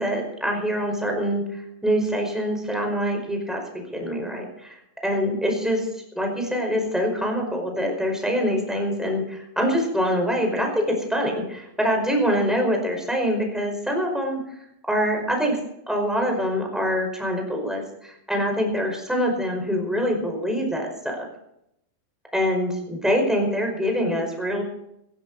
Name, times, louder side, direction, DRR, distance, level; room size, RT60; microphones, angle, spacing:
voice 1, 0.0-1.4 1.8-3.6 3.9-4.7 5.0-5.9 6.1-14.4 14.9-15.6 15.9-21.2 22.3-24.6, equal, ahead, 1 dB, 4.5 m, -24 dB
18.0 x 16.0 x 4.2 m, 0.79 s
omnidirectional pair, 5.3 m